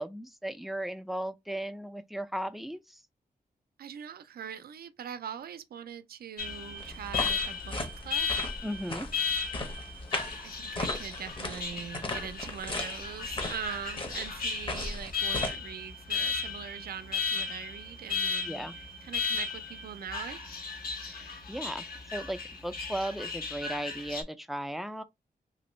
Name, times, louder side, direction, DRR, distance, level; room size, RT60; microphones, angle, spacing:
voice 1, 0.0-3.0 8.6-9.1 18.4-18.7 21.0-25.0, right 1 dB, ahead, 0.3 m, -36 dB
voice 2, 3.8-8.4 10.4-18.7 19.0-20.4, right 8 dB, 75° right, 0.4 m, -42 dB
Alarm, 6.4-24.2, left 5 dB, 70° left, 1.0 m, -35 dB
sound 1, 6.8-15.6, left 2 dB, 30° left, 0.7 m, -37 dB
2.9 x 2.6 x 3.0 m
wide cardioid pair, 125°, 16 cm